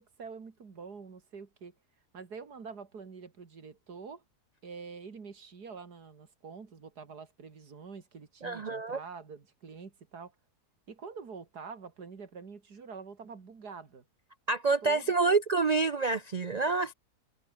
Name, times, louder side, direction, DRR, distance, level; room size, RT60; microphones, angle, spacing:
voice 1, 0.0-1.7 2.1-4.2 4.6-10.3 10.9-14.0 14.8-15.3, right 5 dB, 90° right, 3.0 m, -46 dB
voice 2, 8.4-9.0 14.5-16.9, right 4 dB, 65° right, 0.4 m, -27 dB
omnidirectional pair, 1.7 m